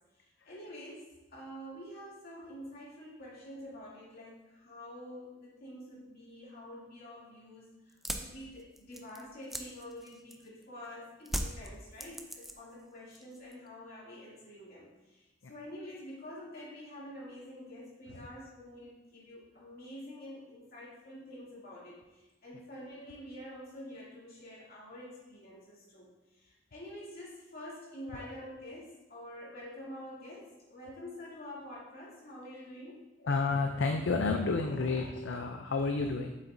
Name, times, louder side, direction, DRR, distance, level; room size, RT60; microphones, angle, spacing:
voice 1, 0.2-33.1, left 1 dB, 55° left, -7 dB, 2.7 m, -47 dB
sound 1, 7.9-10.6 11.2-12.8 13.1-13.7, equal, ahead, 0.5 m, -39 dB
voice 2, 33.2-36.3, left 3 dB, 75° left, 4 dB, 0.5 m, -31 dB
7.9 x 7.2 x 2.7 m, 1.1 s
head